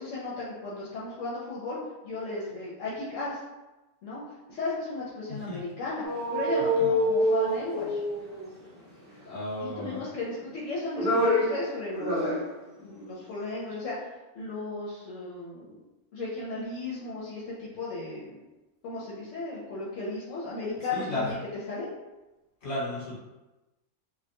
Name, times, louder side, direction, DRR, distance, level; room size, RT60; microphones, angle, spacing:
voice 1, 0.0-1.8 2.0-3.4 4.0-4.2 4.5-6.0 6.3-8.0 9.6-12.3 12.8-13.9 14.3-15.8 16.1-18.4 18.8-21.4 21.7-21.9, left 3 dB, 75° left, -6 dB, 0.9 m, -35 dB
voice 2, 5.3-5.6 6.8-6.9 9.2-10.0 20.9-21.3 22.6-23.2, left 1 dB, 45° left, -8 dB, 1.2 m, -33 dB
sound 1, 6.0-8.6 9.8-10.4 10.7-11.6 11.9-12.5 12.8-12.9, equal, 15° right, 0.9 m, -26 dB
2.4 x 2.1 x 2.8 m, 1.1 s
omnidirectional pair, 1.3 m